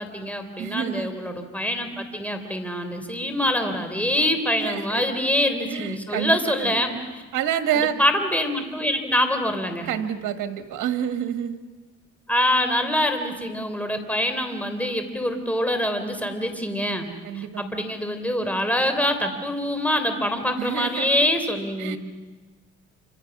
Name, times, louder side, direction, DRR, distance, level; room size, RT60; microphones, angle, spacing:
voice 1, 0.0-7.0 8.0-9.9 12.3-17.1 17.4-22.0, left 1 dB, 5° left, 7 dB, 3.6 m, -25 dB
voice 2, 0.6-1.1 4.6-5.1 5.7-6.8 7.3-8.0 9.9-11.6 17.2-17.8 20.6-21.1 21.8-22.0, right 9 dB, 85° right, 7 dB, 1.8 m, -28 dB
28.0 x 26.0 x 6.1 m, 1.3 s
cardioid pair, 90°, 30 cm